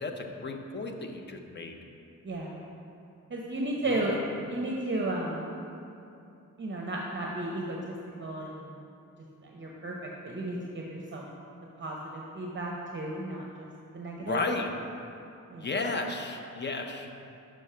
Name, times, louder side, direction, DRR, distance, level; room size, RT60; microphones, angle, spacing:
voice 1, 0.0-1.8 3.9-4.2 14.2-14.7 15.6-17.1, left 3 dB, 35° left, 4 dB, 0.6 m, -33 dB
voice 2, 2.2-2.7 3.3-4.2 4.5-5.5 6.6-7.8 8.2-8.8 9.4-11.2 11.8-13.7 13.9-14.4 15.5-15.7, right 2 dB, 40° right, -1 dB, 0.7 m, -34 dB
6.2 x 5.2 x 5.5 m, 2.7 s
wide cardioid pair, 120°, 30 cm